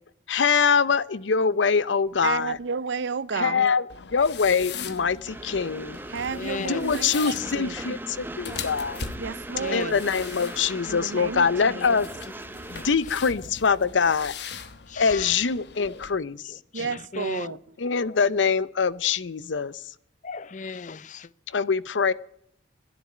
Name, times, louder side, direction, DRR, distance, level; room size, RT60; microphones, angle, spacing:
voice 1, 0.3-2.6 3.4-3.8 4.1-6.0 6.6-9.0 9.7-12.1 12.7-14.3 15.0-16.5 17.8-19.7 21.5-22.1, left 5 dB, 80° left, 0.6 m, -24 dB
voice 2, 2.2-3.7 6.1-8.0 9.2-10.0 10.9-12.0 16.7-17.6, right 5 dB, 75° right, 0.6 m, -32 dB
voice 3, 3.3-3.7 6.3-6.9 9.6-10.0 11.5-12.1 12.7-13.5 13.9-14.1 14.9-15.4 15.9-16.1 16.4-17.6 20.2-21.3, left 4 dB, 40° left, 0.5 m, -37 dB
sound 1, 3.9-16.1, left 5 dB, 65° left, 1.2 m, -40 dB
Train, 5.3-12.9, right 1 dB, 10° right, 0.7 m, -39 dB
11.0 x 10.5 x 9.3 m
head